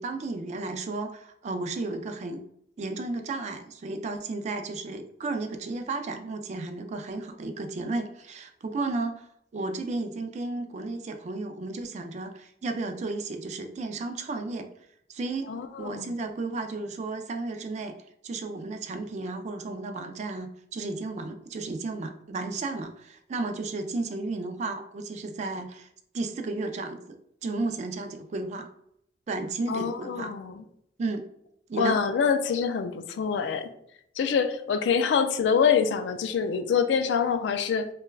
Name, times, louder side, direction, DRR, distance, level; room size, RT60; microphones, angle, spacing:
voice 1, 0.0-2.4 2.8-9.3 9.5-14.7 15.1-17.9 18.2-25.9 26.1-28.7 29.3-30.3 31.0-31.3 31.7-32.0, right 3 dB, 40° right, 6 dB, 0.3 m, -33 dB
voice 2, 15.5-16.2 29.7-30.6 31.8-33.7 34.2-37.9, left 6 dB, 90° left, 9 dB, 0.3 m, -25 dB
3.2 x 2.2 x 2.3 m, 0.72 s
head